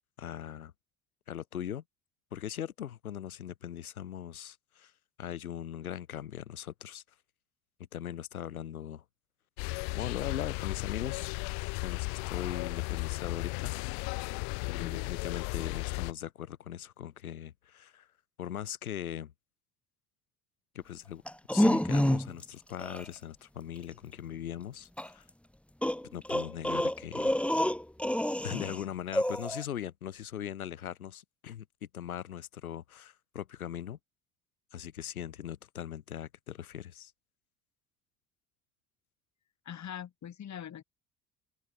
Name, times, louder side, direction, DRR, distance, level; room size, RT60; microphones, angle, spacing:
voice 1, 0.2-0.7 1.3-1.8 2.3-4.9 5.2-7.0 7.9-9.0 9.9-11.3 11.8-13.7 14.6-18.1 18.4-19.3 20.7-21.2 21.5-25.2 26.0-27.4 28.4-34.0 34.7-37.1, left 10 dB, 85° left, 5.0 m, -40 dB
sound 1, 9.6-16.1, left 37 dB, 70° left, 1.8 m, -35 dB
sound 2, 21.3-22.4 22.8-23.0 25.0-25.1 25.8-28.8 29.1-29.6, left 1 dB, 5° left, 2.4 m, -28 dB
voice 2, 39.6-40.8, left 9 dB, 40° left, 3.0 m, -42 dB
open air
hypercardioid pair, 65°, 42 cm